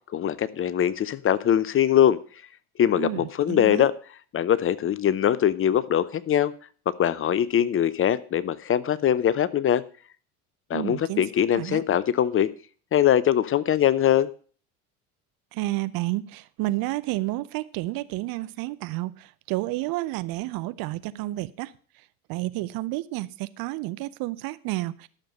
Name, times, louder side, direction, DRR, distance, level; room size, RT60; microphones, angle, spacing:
voice 1, 0.1-2.2 2.8-3.9 4.3-6.5 7.0-9.8 10.7-12.5 12.9-14.3, left 10 dB, 30° left, 0.6 m, -22 dB
voice 2, 2.9-3.9 10.7-11.2 11.5-11.8 15.5-21.7 22.3-25.1, right 18 dB, 50° right, 0.7 m, -30 dB
12.0 x 6.6 x 5.4 m
hypercardioid pair, 75°, 44 cm